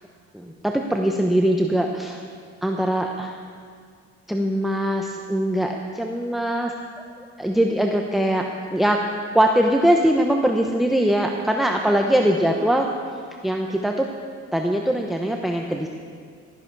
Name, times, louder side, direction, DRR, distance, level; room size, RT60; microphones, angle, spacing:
voice 1, 0.3-2.2 2.6-3.4 4.3-6.7 7.2-9.0 9.3-12.9 13.4-14.1 14.5-15.9, right 1 dB, ahead, 2 dB, 0.9 m, -22 dB
15.5 x 13.5 x 4.7 m, 2.1 s
cardioid pair, 90°, 30 cm